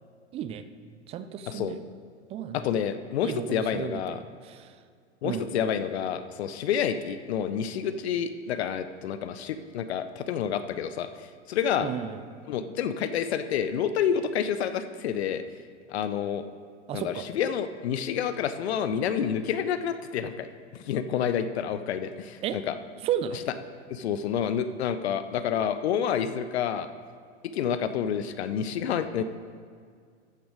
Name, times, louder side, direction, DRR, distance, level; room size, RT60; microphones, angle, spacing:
voice 1, 0.3-0.6 1.1-1.8 2.3-2.7 3.2-4.2 4.4-4.7 5.2-5.4 11.8-12.2 16.9-17.3 22.4-22.6 23.0-23.5 29.2-29.3, right 9 dB, 20° right, 11 dB, 0.4 m, -33 dB
voice 2, 2.5-4.2 5.2-11.9 12.5-15.4 15.9-16.4 16.9-20.5 20.7-22.7 23.9-26.9 27.5-29.2, left 8 dB, 60° left, 11 dB, 0.7 m, -29 dB
13.5 x 6.0 x 4.9 m, 2.1 s
hypercardioid pair, 100°, 36 cm